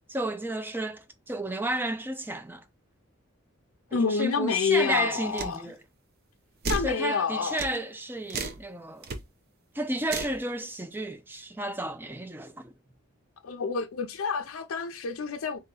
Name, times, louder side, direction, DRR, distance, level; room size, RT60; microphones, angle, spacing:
voice 1, 0.1-2.6 3.9-5.8 6.8-9.1 9.7-12.7, right 1 dB, 10° right, 0.4 m, -32 dB
voice 2, 3.9-5.7 6.7-7.6 13.4-15.6, left 5 dB, 80° left, 0.5 m, -28 dB
sound 1, 5.4-5.6 6.6-6.9 7.6-7.8 8.3-8.6 9.0-9.2 10.1-10.4, right 3 dB, 50° right, 0.7 m, -32 dB
3.9 x 2.9 x 3.7 m
head